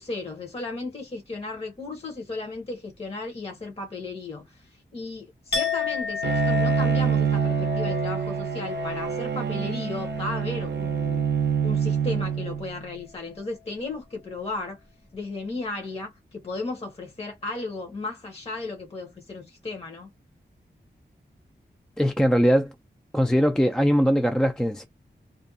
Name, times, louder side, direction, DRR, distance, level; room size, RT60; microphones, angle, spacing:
voice 1, 0.0-11.3 11.6-14.8 15.1-20.1, left 3 dB, 35° left, 0.8 m, -35 dB
Chink clink, 5.5-11.5 11.8-12.2, left 8 dB, 70° left, 1.2 m, -32 dB
Bowed string instrument, 6.2-12.9, right 8 dB, 75° right, 0.5 m, -26 dB
voice 2, 22.0-22.7 23.1-24.9, equal, 5° left, 0.3 m, -21 dB
2.4 x 2.2 x 2.6 m
wide cardioid pair, 100°, 18 cm